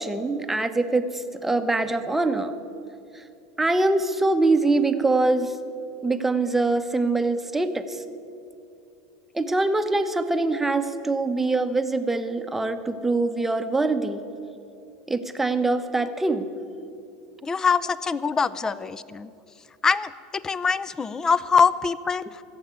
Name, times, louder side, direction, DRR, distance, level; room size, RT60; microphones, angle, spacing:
voice 1, 0.0-2.6 3.1-3.2 3.6-5.5 6.0-8.0 9.3-14.2 15.1-16.5 18.6-18.7, right 2 dB, 10° right, 9 dB, 0.8 m, -24 dB
voice 2, 17.4-19.3 19.8-22.4, left 5 dB, 20° left, 17 dB, 0.5 m, -24 dB
15.0 x 7.3 x 9.4 m, 2.6 s
supercardioid pair, 120°, 3 cm